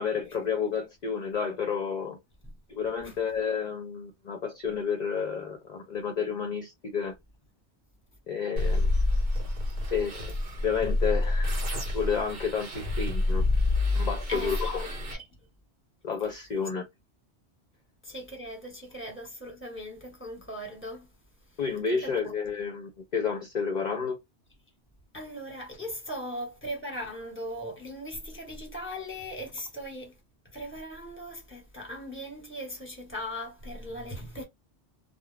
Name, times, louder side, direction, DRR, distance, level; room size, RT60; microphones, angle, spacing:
voice 1, 0.0-2.2 2.8-7.2 8.3-8.9 9.9-10.3 10.6-11.6 11.9-13.4 13.9-14.9 16.0-16.9 21.6-24.2, left 6 dB, 50° left, 0.6 m, -30 dB
sound 1, 8.6-15.2, left 2 dB, 55° right, 1.0 m, -28 dB
voice 2, 18.0-21.1 22.0-22.3 25.1-30.2 30.5-34.4, equal, 10° left, 1.0 m, -39 dB
2.3 x 2.0 x 3.2 m
omnidirectional pair, 1.2 m